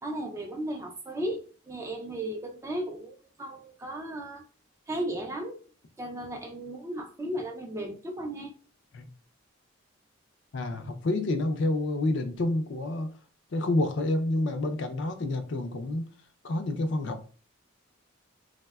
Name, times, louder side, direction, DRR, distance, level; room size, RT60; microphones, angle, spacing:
voice 1, 0.0-4.4 4.9-5.6 6.0-8.5, right 1 dB, 15° right, 0.3 m, -35 dB
voice 2, 10.5-13.1 13.5-16.1 16.4-17.2, left 2 dB, 60° left, 0.4 m, -28 dB
3.4 x 2.1 x 2.2 m
head